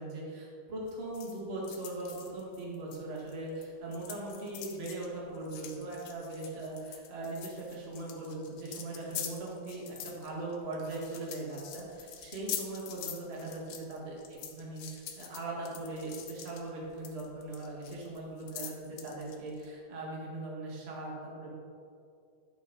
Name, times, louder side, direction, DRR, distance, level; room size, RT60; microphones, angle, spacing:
voice 1, 0.0-14.2 14.5-21.5, right 2 dB, 35° right, -3 dB, 1.0 m, -40 dB
sound 1, 0.9-3.7 3.9-19.7, left 9 dB, 75° left, 2.3 m, -45 dB
11.0 x 6.4 x 4.0 m, 2.4 s
omnidirectional pair, 4.0 m